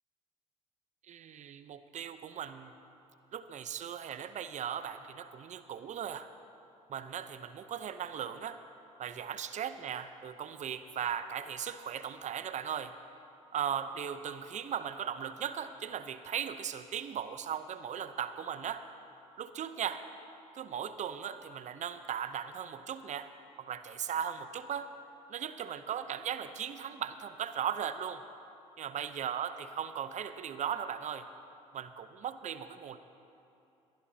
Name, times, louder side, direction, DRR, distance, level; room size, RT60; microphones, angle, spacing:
voice 1, 1.1-2.7 3.3-6.3 6.9-8.6 9.0-12.9 13.5-18.9 19.4-20.1 20.5-23.3 23.6-24.9 25.3-28.2 28.8-31.3 31.7-33.0, right 8 dB, 45° right, 11 dB, 0.7 m, -38 dB
23.0 x 11.5 x 2.8 m, 2.7 s
hypercardioid pair, 65°, 16 cm